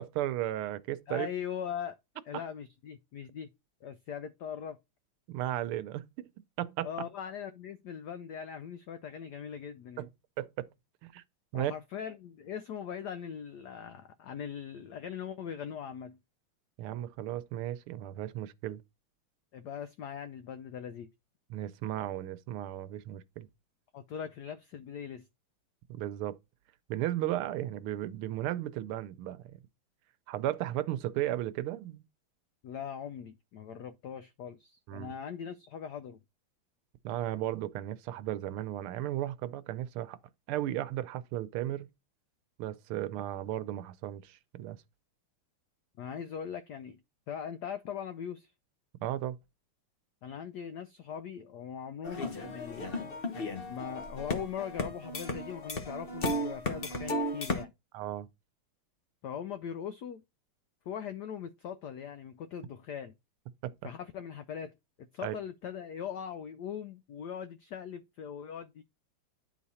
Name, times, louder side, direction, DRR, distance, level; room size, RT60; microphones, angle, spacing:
voice 1, 0.0-1.3 5.3-6.3 6.6-6.9 10.0-10.1 10.4-10.7 11.0-11.2 11.5-11.7 16.8-18.8 21.5-23.5 25.9-26.4 26.9-29.6 30.3-32.0 34.9-35.1 37.0-40.2 40.5-41.9 42.6-44.8 49.0-49.4 57.9-58.3 63.6-63.7 65.2-65.4, right 13 dB, 80° right, 1.5 m, -35 dB
voice 2, 1.1-2.0 2.3-3.5 3.8-4.8 6.8-10.1 11.5-16.2 19.5-21.1 23.9-25.3 32.6-36.2 46.0-47.0 47.3-48.5 50.2-52.9 53.7-57.7 59.2-60.2 60.9-63.1 63.8-64.7 65.0-68.8, left 8 dB, 90° left, 0.9 m, -40 dB
sound 1, 52.0-57.6, left 1 dB, 45° left, 0.8 m, -35 dB
9.9 x 4.1 x 4.1 m
omnidirectional pair, 2.4 m